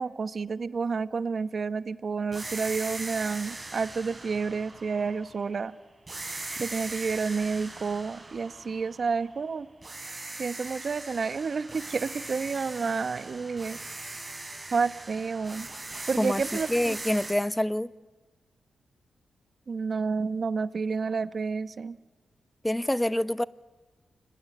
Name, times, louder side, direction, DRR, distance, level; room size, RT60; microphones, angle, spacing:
voice 1, 0.0-5.7 6.6-9.7 10.4-13.8 14.7-15.7 16.1-17.0 19.7-22.0, right 5 dB, 55° right, 1.1 m, -30 dB
sound 1, 2.3-5.6 6.1-9.4 9.8-17.3, right 2 dB, 30° right, 6.6 m, -40 dB
voice 2, 16.7-17.9 22.6-23.4, left 1 dB, 10° left, 1.0 m, -26 dB
29.0 x 23.0 x 8.5 m
supercardioid pair, 45°, 0 cm